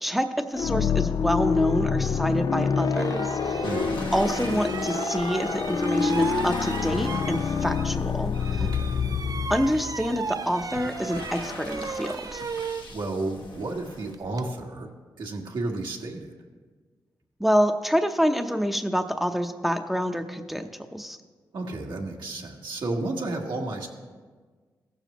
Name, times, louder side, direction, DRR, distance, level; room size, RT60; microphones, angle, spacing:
voice 1, 0.0-3.6 4.1-8.7 9.5-12.4 17.4-21.2, equal, ahead, 6 dB, 0.8 m, -27 dB
sound 1, 0.5-10.3, left 6 dB, 55° left, 0.4 m, -27 dB
sound 2, 2.3-2.4 2.9-8.1 8.3-14.5, right 5 dB, 50° right, 0.5 m, -36 dB
sound 3, 3.6-14.1, left 3 dB, 70° left, 1.2 m, -42 dB
voice 2, 3.6-4.1 8.6-9.0 12.9-14.9 15.2-16.3 21.5-23.9, right 2 dB, 70° right, 0 dB, 1.5 m, -32 dB
16.0 x 7.1 x 3.0 m, 1.5 s
supercardioid pair, 40°, 8 cm